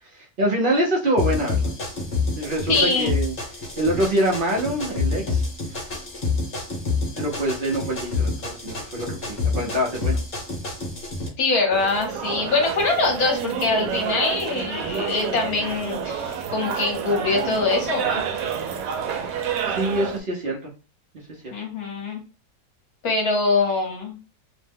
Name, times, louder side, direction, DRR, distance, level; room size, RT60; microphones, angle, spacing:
voice 1, 0.1-1.7 2.4-3.3 3.8-5.4 7.2-10.2 19.7-20.7 21.4-21.5, right 1 dB, 60° right, -2 dB, 0.5 m, -25 dB
sound 1, 1.2-11.3, left 4 dB, 40° left, 1.1 m, -28 dB
voice 2, 2.7-3.1 11.4-18.2 21.5-22.2 23.0-24.2, left 3 dB, 60° left, 1 dB, 1.3 m, -23 dB
sound 2, 11.7-20.2, right 7 dB, 80° right, 1.2 m, -29 dB
3.1 x 2.1 x 3.4 m, 0.33 s
omnidirectional pair, 1.9 m